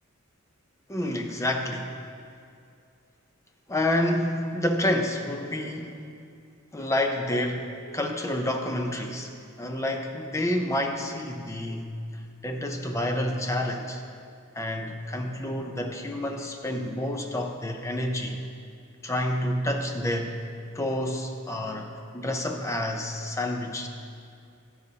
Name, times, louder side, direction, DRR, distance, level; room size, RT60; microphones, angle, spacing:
voice 1, 0.9-1.9 3.7-6.0 6.7-9.3 9.6-11.9 12.4-14.0 14.5-18.4 19.0-20.4 20.7-23.9, left 1 dB, 15° left, 4 dB, 0.6 m, -29 dB
11.5 x 10.5 x 2.8 m, 2.4 s
head